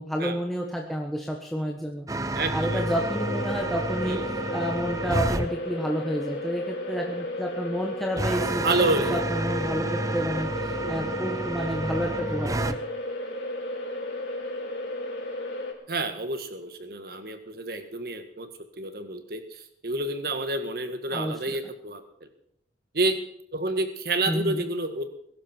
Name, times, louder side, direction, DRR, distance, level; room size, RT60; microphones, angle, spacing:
voice 1, 0.0-4.2 4.5-12.8 21.1-21.6 24.2-24.6, equal, ahead, 0 dB, 1.3 m, -30 dB
sound 1, 2.1-5.5 8.2-12.8, right 2 dB, 20° right, 0.7 m, -30 dB
voice 2, 2.3-2.8 4.1-4.2 8.6-9.2 10.8-11.0 15.9-18.5 18.8-19.4 19.8-22.3 22.9-23.2 23.5-25.1, right 2 dB, 55° right, 8 dB, 1.8 m, -29 dB
sound 2, 2.7-15.7, left 1 dB, 80° left, 4.2 m, -34 dB
22.0 x 12.0 x 4.6 m, 0.74 s
head